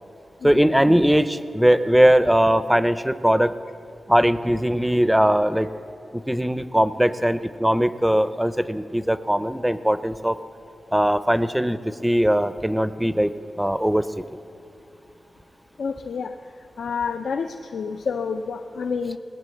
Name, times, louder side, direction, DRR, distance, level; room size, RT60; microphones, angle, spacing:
voice 1, 0.4-3.6 4.1-5.7 6.1-10.4 10.9-13.3 13.6-14.2, equal, 5° right, 13 dB, 0.5 m, -20 dB
voice 2, 15.8-16.4 16.8-19.2, left 5 dB, 80° left, 6 dB, 0.5 m, -28 dB
19.0 x 9.1 x 7.8 m, 2.6 s
wide cardioid pair, 130°, 0 cm